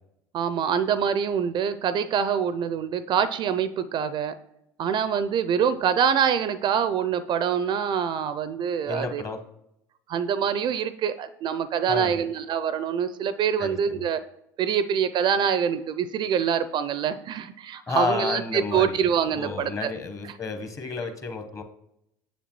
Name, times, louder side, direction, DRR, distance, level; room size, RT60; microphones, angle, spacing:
voice 1, 0.3-4.3 4.8-9.2 10.1-14.2 14.6-19.9 20.2-20.3, right 8 dB, 45° right, 13 dB, 0.4 m, -25 dB
voice 2, 8.8-9.4 11.9-12.2 13.6-14.0 17.9-19.0 19.3-21.6, left 4 dB, 30° left, 6 dB, 1.0 m, -31 dB
7.2 x 6.8 x 3.0 m, 0.81 s
hypercardioid pair, 75°, 11 cm